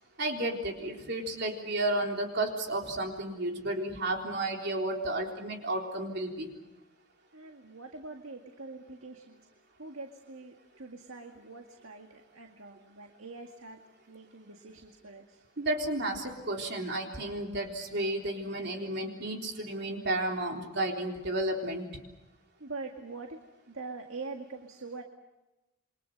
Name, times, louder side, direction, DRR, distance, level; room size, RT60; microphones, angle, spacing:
voice 1, 0.2-6.5 15.6-21.9, right 1 dB, 50° right, 2 dB, 3.7 m, -32 dB
voice 2, 7.3-9.4 9.8-13.8 14.1-15.4 22.6-23.4 23.7-25.0, right 3 dB, 65° right, 4 dB, 2.0 m, -44 dB
28.5 x 24.0 x 6.7 m, 1.0 s
head